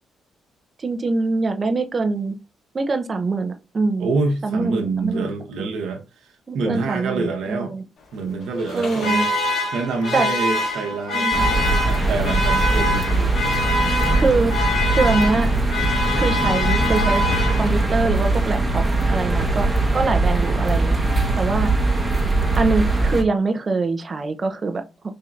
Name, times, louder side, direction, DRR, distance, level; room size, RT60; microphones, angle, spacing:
voice 1, 0.8-2.4 2.7-4.1 4.4-5.3 6.5-7.8 8.7-9.3 10.1-10.3 11.1-11.4 14.2-14.5 14.9-15.5 16.1-17.2 17.6-18.8 19.1-19.7 19.9-21.0 21.4-21.7 22.6-24.8, right 3 dB, 35° right, 0.6 m, -23 dB
voice 2, 4.0-6.0 6.5-7.7 8.1-9.3 9.7-11.5 11.9-13.4, right 3 dB, 80° right, 1.0 m, -26 dB
Alarm, 8.6-18.0, left 1 dB, 60° left, 1.4 m, -24 dB
sound 1, 11.3-23.2, right 2 dB, 15° right, 0.9 m, -21 dB
4.4 x 2.8 x 2.4 m
cardioid pair, 90°, 0 cm